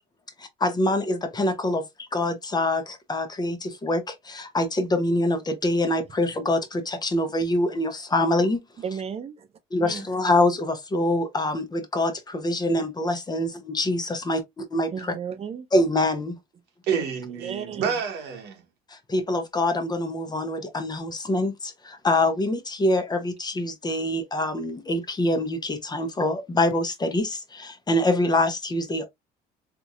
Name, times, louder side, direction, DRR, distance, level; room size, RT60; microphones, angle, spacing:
voice 1, 0.4-8.6 9.7-14.9 15.7-16.4 18.9-29.1, left 1 dB, 25° left, 0.8 m, -25 dB
voice 2, 8.8-9.5 14.9-15.7 16.9-17.0 17.4-17.9, right 7 dB, 35° right, 0.8 m, -34 dB
voice 3, 16.8-18.6, right 7 dB, 85° right, 1.3 m, -29 dB
3.5 x 3.0 x 2.5 m
cardioid pair, 110°, 17 cm